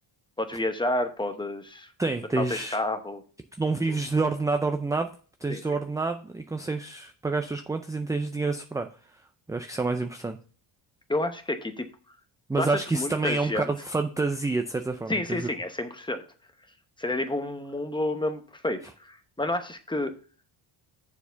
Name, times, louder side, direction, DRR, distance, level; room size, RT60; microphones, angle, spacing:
voice 1, 0.4-1.9 2.3-3.2 3.9-4.0 5.5-5.6 11.1-11.9 12.6-13.7 15.1-16.3 17.0-20.1, left 1 dB, 10° left, 8 dB, 0.9 m, -30 dB
voice 2, 2.0-2.8 3.6-5.1 5.4-8.9 9.5-10.4 12.5-15.5, right 3 dB, 10° right, 7 dB, 0.4 m, -28 dB
7.0 x 4.5 x 6.7 m, 0.39 s
cardioid pair, 110°, 47 cm